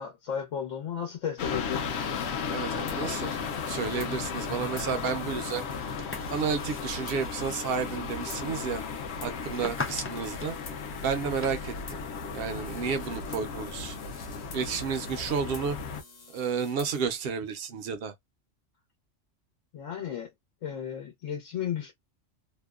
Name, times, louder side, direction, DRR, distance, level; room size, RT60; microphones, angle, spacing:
voice 1, 0.0-2.0 19.7-20.3 20.6-21.9, left 8 dB, 90° left, 1.1 m, -34 dB
sound 1, 1.4-16.0, left 5 dB, 70° left, 0.8 m, -35 dB
sound 2, 1.7-17.0, left 4 dB, 50° left, 1.2 m, -51 dB
voice 2, 2.5-3.4 3.7-5.6 6.3-8.8 9.2-10.5 11.0-12.0 12.3-14.0 14.5-15.8 16.3-18.1, right 6 dB, 60° right, 0.7 m, -31 dB
sound 3, 4.8-11.5, left 3 dB, 20° left, 0.3 m, -42 dB
2.8 x 2.1 x 2.3 m
omnidirectional pair, 1.3 m